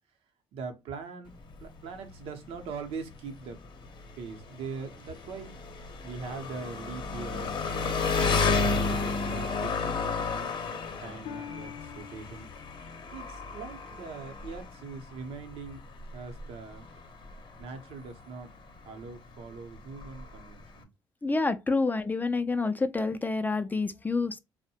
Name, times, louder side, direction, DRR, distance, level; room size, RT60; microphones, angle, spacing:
voice 1, 0.5-3.6 4.2-5.6 6.0-8.0 8.5-10.5 11.0-12.5 13.1-15.8 16.1-16.9 17.6-18.5 18.8-20.9, right 4 dB, 80° right, 0.7 m, -41 dB
Engine, 1.3-20.8, left 4 dB, 55° left, 0.7 m, -33 dB
Harp, 11.2-15.0 15.5-15.9 16.6-16.7, left 9 dB, 90° left, 0.5 m, -48 dB
voice 2, 21.2-24.4, left 3 dB, 20° left, 0.3 m, -28 dB
2.6 x 2.1 x 2.7 m
supercardioid pair, 75°, 10 cm